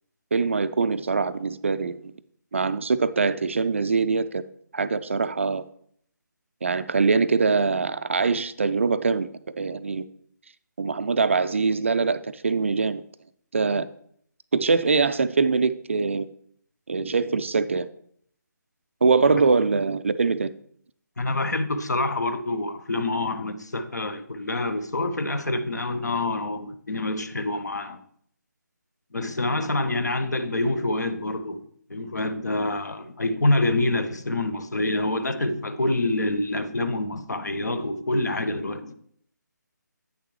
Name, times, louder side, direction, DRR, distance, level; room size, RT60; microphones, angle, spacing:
voice 1, 0.3-2.1 2.5-4.4 4.7-5.6 6.6-9.3 9.6-10.0 10.8-13.0 13.5-13.9 14.5-16.3 16.9-17.9 19.0-20.5, right 4 dB, 40° right, 0.3 m, -23 dB
voice 2, 21.2-28.0 29.1-38.9, left 2 dB, 60° left, 0.8 m, -26 dB
8.8 x 6.6 x 3.2 m
figure-of-eight pair, 150°, 10 cm